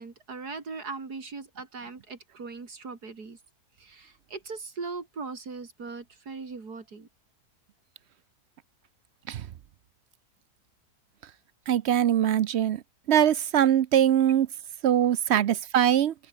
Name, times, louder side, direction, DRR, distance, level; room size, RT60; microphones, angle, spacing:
voice 1, 0.0-3.4 3.8-7.1 15.3-15.4, right 4 dB, 80° right, 3.5 m, -39 dB
voice 2, 11.7-12.8 13.1-14.5 14.8-16.1, right 10 dB, 60° right, 0.7 m, -22 dB
open air
omnidirectional pair, 1.7 m